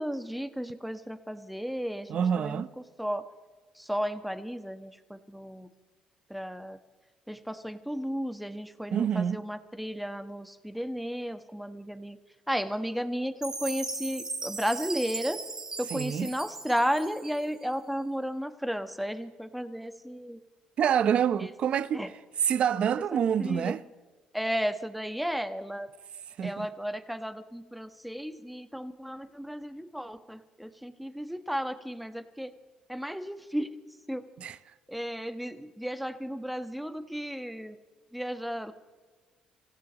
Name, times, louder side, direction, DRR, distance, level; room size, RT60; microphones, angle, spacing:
voice 1, 0.0-2.6 3.0-3.3 3.7-5.7 6.3-6.8 7.3-12.2 12.5-15.4 15.8-20.4 21.4-21.5 21.9-22.1 23.1-23.7 24.3-25.9 26.4-32.5 32.9-33.7 34.1-34.2 34.9-37.8 38.1-38.7, equal, ahead, 1.2 m, -34 dB
voice 2, 2.1-2.7 8.9-9.4 15.9-16.3 20.8-22.1 22.4-23.8 26.4-26.7 34.4-34.6, right 8 dB, 60° right, 0.7 m, -27 dB
Chime, 13.4-17.7, right 3 dB, 25° right, 1.5 m, -38 dB
26.5 x 16.5 x 3.0 m
cardioid pair, 80°, 2 cm